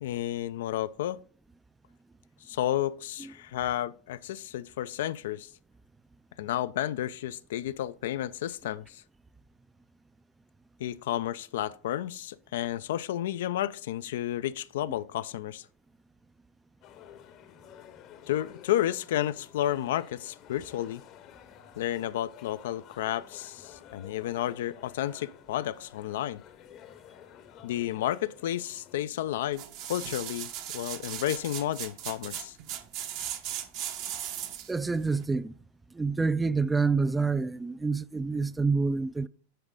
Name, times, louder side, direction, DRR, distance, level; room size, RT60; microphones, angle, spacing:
voice 1, 0.0-1.2 2.4-5.5 6.4-9.0 10.8-15.7 18.3-21.0 21.8-26.4 27.6-29.6 29.9-32.6, left 12 dB, 70° left, 0.3 m, -31 dB
sound 1, 16.8-29.0, left 10 dB, 45° left, 0.8 m, -52 dB
sound 2, 29.5-34.8 35.2-35.3, right 10 dB, 50° right, 0.9 m, -37 dB
voice 2, 34.7-35.5 35.9-39.3, right 4 dB, 10° right, 0.3 m, -27 dB
10.0 x 3.9 x 3.7 m
hypercardioid pair, 100°, 0 cm